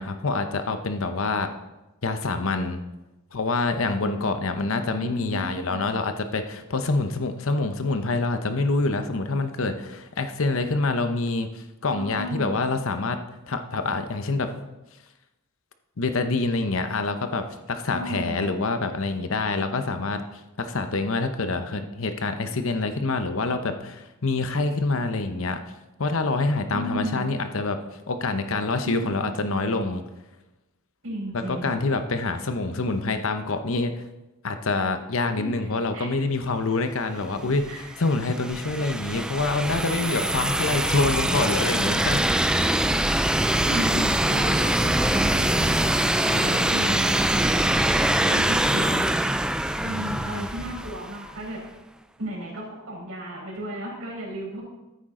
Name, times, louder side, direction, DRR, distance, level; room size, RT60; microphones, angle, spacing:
voice 1, 0.0-1.5 2.0-2.8 3.3-13.2 13.5-14.6 16.0-20.2 20.6-25.6 26.0-27.8 28.1-30.0 31.3-34.0 34.4-42.5 46.8-47.0 49.8-50.5, left 3 dB, 65° left, 8 dB, 0.9 m, -26 dB
voice 2, 5.0-5.8 11.9-12.6 17.9-18.5 26.7-27.4 28.8-29.1 31.0-31.7 35.3-35.5 35.9-36.1 37.7-37.8 43.3-47.8 48.2-49.5 49.8-51.6 52.2-54.6, equal, 65° right, -4 dB, 4.8 m, -34 dB
sound 1, 37.6-51.3, right 1 dB, 5° right, 0.3 m, -23 dB
13.0 x 9.1 x 3.8 m, 0.99 s
head